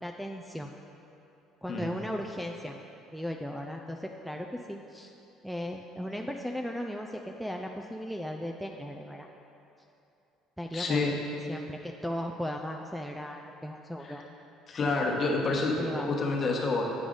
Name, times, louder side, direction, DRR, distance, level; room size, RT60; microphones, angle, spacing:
voice 1, 0.0-0.7 1.6-2.7 3.1-5.1 5.4-9.3 10.6-11.1 11.5-14.2 15.8-16.2, equal, ahead, 2 dB, 0.3 m, -36 dB
voice 2, 10.7-11.1 14.0-14.2 14.7-16.8, left 3 dB, 40° left, -1 dB, 1.1 m, -28 dB
8.6 x 4.8 x 3.8 m, 2.8 s
supercardioid pair, 95°, 0 cm